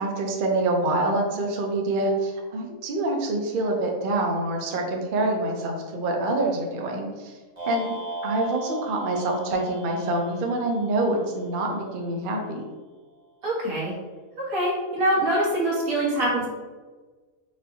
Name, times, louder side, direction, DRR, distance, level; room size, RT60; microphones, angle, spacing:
voice 1, 0.0-7.3 7.7-8.0 8.2-12.7, right 2 dB, 50° right, 1 dB, 0.6 m, -26 dB
sound 1, 7.6-11.9, right 2 dB, 25° right, 0.9 m, -37 dB
voice 2, 13.4-13.9 14.4-16.5, right 1 dB, 90° right, -5 dB, 1.6 m, -24 dB
5.0 x 2.6 x 2.7 m, 1.3 s
omnidirectional pair, 1.4 m